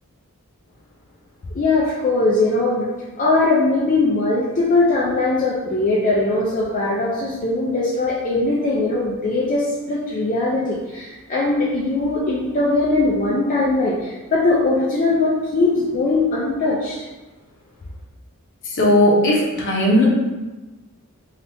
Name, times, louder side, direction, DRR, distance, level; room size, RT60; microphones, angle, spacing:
voice 1, 1.5-2.9 3.2-17.0, left 2 dB, 35° left, -6 dB, 0.4 m, -20 dB
voice 2, 18.8-20.1, left 1 dB, 55° left, -3 dB, 0.8 m, -16 dB
3.3 x 2.8 x 2.6 m, 1.1 s
head